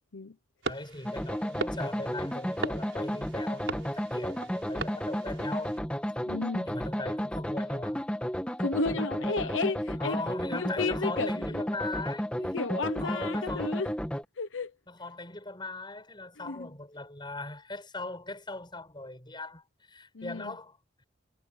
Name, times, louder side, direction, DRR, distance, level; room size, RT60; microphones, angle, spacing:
voice 1, 0.6-5.8 6.6-8.0 8.9-9.5 10.0-12.3 13.0-13.8 14.9-21.0, left 2 dB, 25° left, 7.9 m, -40 dB
sound 1, 0.6-5.8, right 2 dB, 80° right, 4.2 m, -40 dB
sound 2, 1.1-14.2, equal, 5° left, 2.3 m, -33 dB
voice 2, 6.3-6.7 8.6-10.2 10.5-11.6 12.4-14.0 14.4-14.7 16.4-16.7 20.1-20.5, left 3 dB, 85° left, 0.9 m, -33 dB
head